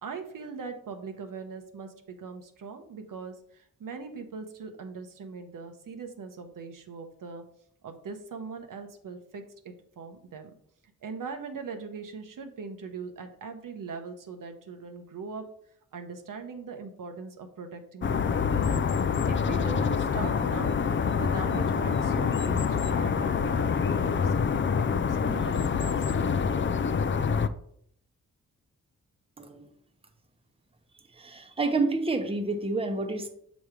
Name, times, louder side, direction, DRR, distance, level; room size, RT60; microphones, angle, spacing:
voice 1, 0.0-7.4 7.8-10.5 11.0-15.5 15.9-18.6 19.3-20.8 21.2-26.4, right 5 dB, 70° right, 6 dB, 0.9 m, -41 dB
sound 1, 18.0-27.5, left 6 dB, 35° left, 0.4 m, -26 dB
voice 2, 31.2-33.3, right 3 dB, 15° right, 5 dB, 0.8 m, -29 dB
7.0 x 3.1 x 4.9 m, 0.67 s
cardioid pair, 75°, 33 cm